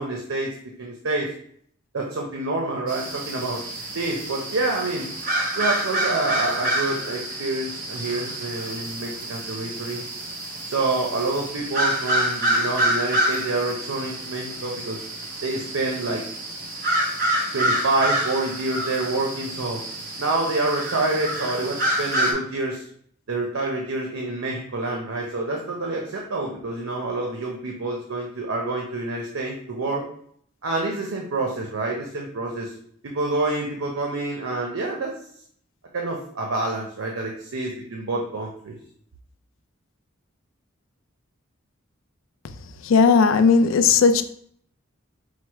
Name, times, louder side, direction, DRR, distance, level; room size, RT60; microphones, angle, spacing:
voice 1, 0.0-1.3 1.9-3.6 3.9-5.1 5.5-10.0 10.7-15.0 15.4-16.2 17.5-19.8 20.2-22.8 23.3-30.0 30.6-32.7 33.0-35.1 35.9-38.8, right 2 dB, 90° right, 0.7 m, -27 dB
sound 1, 2.9-22.3, right 1 dB, 40° right, 0.8 m, -27 dB
voice 2, 42.8-44.2, left 5 dB, 70° left, 0.4 m, -16 dB
4.6 x 2.0 x 4.5 m
head